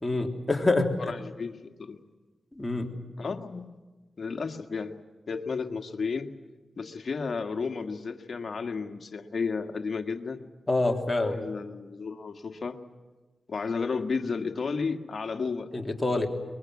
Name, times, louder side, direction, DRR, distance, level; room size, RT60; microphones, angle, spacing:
voice 1, 0.0-1.1 2.6-2.9 10.7-11.4 15.7-16.3, left 2 dB, 20° left, 2 dB, 3.5 m, -26 dB
voice 2, 1.0-2.0 3.2-3.7 4.2-5.0 5.3-6.3 6.8-10.4 11.3-12.8 13.5-15.7, left 5 dB, 60° left, 5 dB, 1.8 m, -33 dB
23.0 x 21.5 x 9.6 m, 1.2 s
cardioid pair, 50°, 0 cm